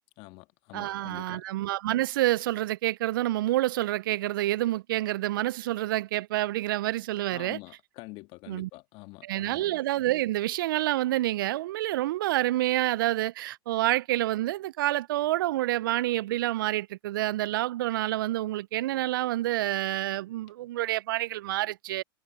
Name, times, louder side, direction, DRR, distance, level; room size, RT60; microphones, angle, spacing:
voice 1, 0.2-1.4 7.3-9.7, left 23 dB, 50° left, 1.9 m, -46 dB
voice 2, 0.7-7.6 8.5-8.7 9.2-22.0, right 15 dB, 70° right, 0.4 m, -28 dB
hypercardioid pair, 100°, 12 cm